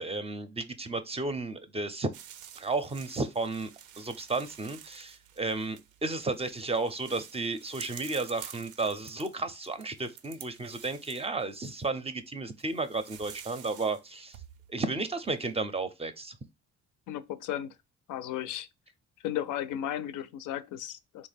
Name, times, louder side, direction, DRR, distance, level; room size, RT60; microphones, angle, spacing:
voice 1, 0.0-2.1 2.6-3.7 4.0-14.4 14.7-16.4, right 3 dB, 20° right, 0.5 m, -33 dB
sound 1, 2.1-11.9 12.6-14.0 14.3-15.2, right 9 dB, 80° right, 0.5 m, -50 dB
voice 2, 17.1-17.7 18.1-18.7 19.2-21.3, left 11 dB, 85° left, 0.4 m, -35 dB
3.5 x 2.1 x 3.4 m
cardioid pair, 90°, 30 cm